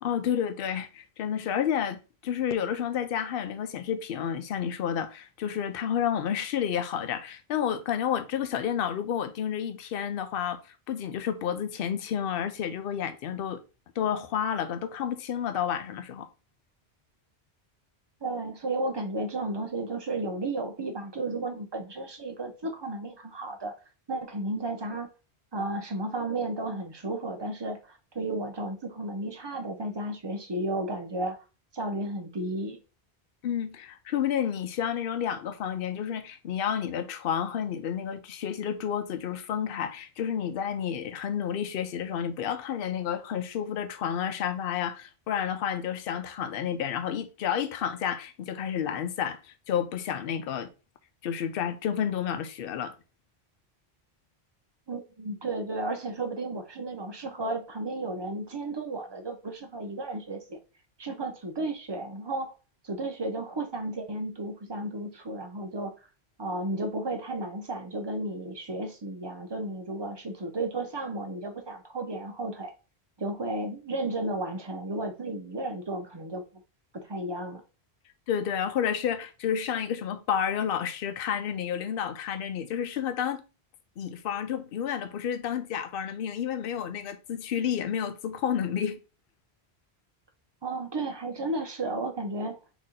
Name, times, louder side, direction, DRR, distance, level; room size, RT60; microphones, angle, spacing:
voice 1, 0.0-10.6 10.9-13.6 14.0-16.3 33.4-50.7 51.2-52.9 78.3-83.4 84.0-89.0, left 8 dB, 65° left, 0.7 m, -30 dB
voice 2, 18.2-23.7 24.1-25.1 25.5-31.4 31.7-32.8 54.9-60.6 61.0-62.5 62.8-65.9 66.4-72.7 73.2-76.4 76.9-77.6 90.6-92.6, right 2 dB, 30° right, 0.5 m, -33 dB
4.1 x 2.9 x 3.8 m
omnidirectional pair, 1.1 m